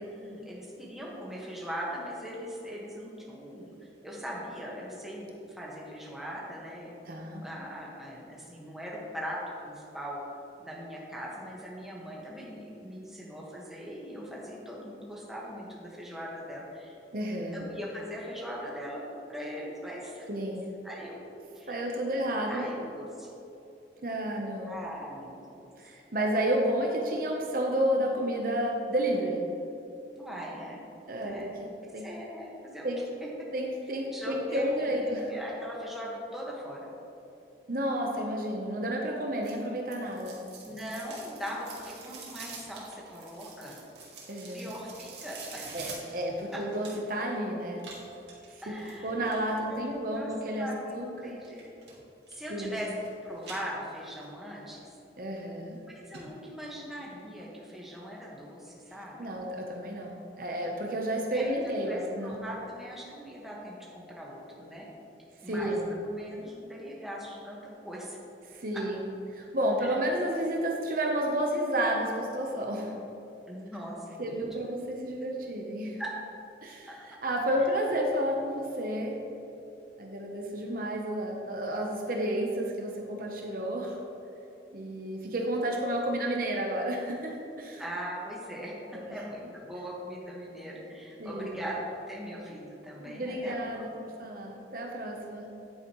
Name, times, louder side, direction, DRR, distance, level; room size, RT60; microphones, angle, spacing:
voice 1, 0.1-6.9 7.4-9.4 9.6-10.2 10.6-17.0 17.5-19.0 19.3-20.3 20.8-21.2 21.5-22.1 22.5-23.3 24.6-25.6 30.2-30.8 31.2-31.5 32.0-32.9 33.2-33.3 34.1-36.9 40.6-43.8 44.5-45.7 46.5-46.6 48.6-49.3 49.7-50.3 50.6-51.7 52.3-52.9 53.2-54.9 55.9-59.3 61.3-64.9 65.4-65.7 66.0-67.6 67.8-68.2 68.7-68.8 69.8-69.9 73.5-74.7 76.0-76.1 76.9-77.0 87.8-91.8 92.1-93.9, equal, ahead, -5 dB, 1.5 m, -40 dB
voice 2, 7.1-7.4 17.1-17.6 20.3-20.6 21.7-22.6 24.0-24.7 25.8-29.4 31.1-31.5 31.9-32.1 32.8-33.0 33.5-35.3 37.7-40.4 44.3-44.7 45.7-47.8 48.7-48.8 49.0-50.7 50.9-51.4 52.5-52.8 55.2-55.8 59.2-62.4 65.4-65.9 68.5-69.0 69.3-72.9 74.2-76.0 76.6-79.2 80.0-84.0 84.7-87.8 88.9-89.2 91.2-91.6 93.0-95.5, right 1 dB, 55° right, 0 dB, 0.9 m, -31 dB
sound 1, 39.4-47.2 47.8-49.5 51.4-51.9 52.3-53.1 53.4-54.2 54.6-54.7 55.4-55.5 55.8-55.9 56.1-56.2 56.6-56.7, right 4 dB, 75° right, 2.1 m, -46 dB
9.9 x 8.9 x 3.1 m, 2.9 s
head